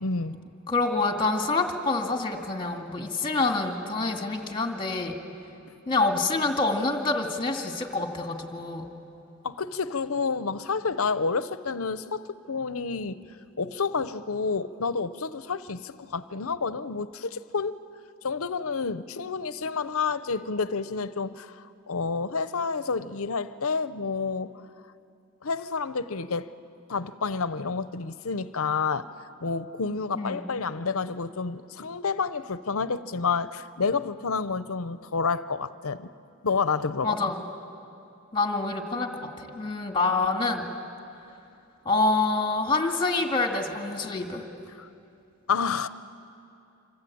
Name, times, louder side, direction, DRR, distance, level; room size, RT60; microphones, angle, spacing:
voice 1, 0.0-0.4 9.4-13.2 13.6-17.8 18.2-24.5 25.4-26.5 26.9-29.1 29.4-36.1 36.4-37.3 44.8-44.9 45.5-45.9, left 5 dB, 65° left, 0.8 m, -29 dB
voice 2, 0.7-5.1 5.9-8.8 30.1-30.4 37.0-37.5 38.3-40.6 41.9-44.4, left 3 dB, 20° left, 2.2 m, -26 dB
26.0 x 26.0 x 8.7 m
head